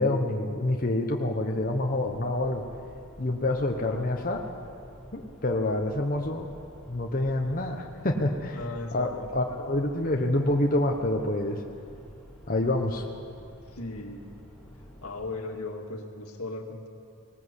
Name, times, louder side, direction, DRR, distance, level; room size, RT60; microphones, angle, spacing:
voice 1, 0.0-2.6 3.2-4.5 5.1-6.5 6.9-8.6 8.9-11.6 12.5-13.0, left 1 dB, 40° left, 1 dB, 1.2 m, -27 dB
sound 1, 1.6-15.3, equal, ahead, 5.3 m, -50 dB
voice 2, 8.5-9.4 13.7-14.2 15.0-16.9, left 2 dB, 80° left, 3 dB, 2.1 m, -37 dB
19.5 x 19.5 x 8.3 m, 2.6 s
head